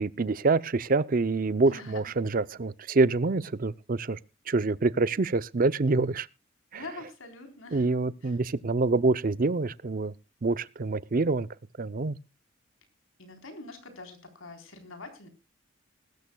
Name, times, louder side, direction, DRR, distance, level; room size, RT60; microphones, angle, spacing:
voice 1, 0.0-4.2 4.5-6.3 7.7-10.1 10.4-11.5 11.8-12.2, right 3 dB, 45° right, 0.5 m, -26 dB
voice 2, 1.7-2.1 6.7-7.9 8.2-8.4 13.2-15.3, left 2 dB, 80° left, 3.8 m, -44 dB
21.0 x 13.0 x 2.2 m
head